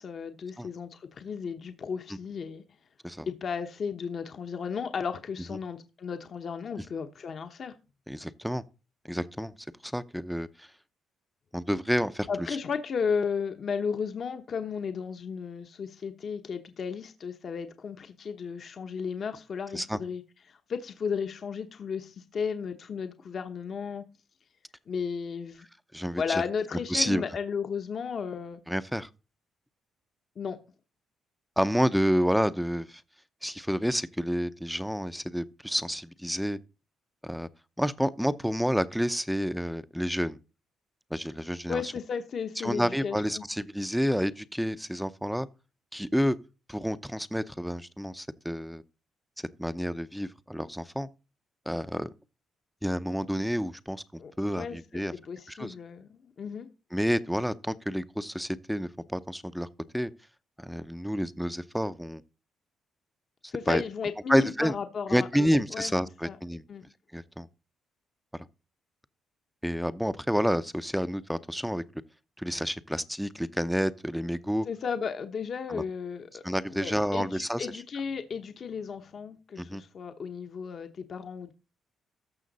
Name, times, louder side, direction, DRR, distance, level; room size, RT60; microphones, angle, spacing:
voice 1, 0.0-2.6 3.3-7.7 12.3-20.2 20.5-24.0 24.9-25.7 26.2-28.6 30.4-30.6 41.7-43.4 54.2-56.7 63.5-65.9 66.2-66.4 66.7-66.8 74.7-76.4 76.7-81.5, left 6 dB, 50° left, 1.0 m, -34 dB
voice 2, 8.1-8.6 9.0-9.5 9.8-10.7 11.5-12.3 19.7-20.0 25.9-26.4 26.9-27.2 28.7-29.1 31.6-33.0 33.4-36.6 37.2-37.5 37.8-40.4 41.1-41.9 42.6-45.5 45.9-46.4 46.7-48.8 49.6-51.1 51.7-52.1 52.8-54.0 54.4-55.1 55.5-55.7 56.9-59.7 59.9-60.1 60.6-62.2 63.7-63.8 64.3-64.8 65.1-66.6 67.1-67.5 68.3-68.5 69.6-71.8 72.4-74.7 75.7-75.8 76.4-77.7 79.6-79.8, equal, ahead, 0.6 m, -29 dB
14.0 x 5.8 x 4.1 m
cardioid pair, 90°, 0 cm